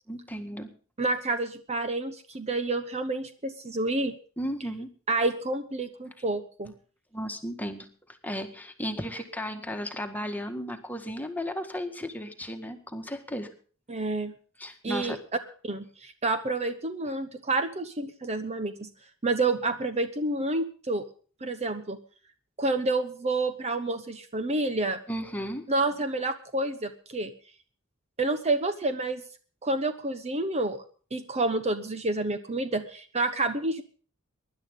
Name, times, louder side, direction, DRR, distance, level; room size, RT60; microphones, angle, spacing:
voice 1, 0.1-0.7 4.4-4.9 7.1-7.9 8.2-13.5 14.6-15.2 25.1-25.7, equal, 10° left, 5 dB, 1.8 m, -34 dB
voice 2, 1.0-4.1 5.1-6.7 13.9-14.3 14.8-15.2 15.6-18.9 19.2-21.0 21.4-22.0 22.6-25.0 25.7-27.3 28.2-29.2 29.6-30.8 31.1-33.8, right 2 dB, 30° right, 9 dB, 1.0 m, -29 dB
23.5 x 11.0 x 3.8 m, 0.41 s
head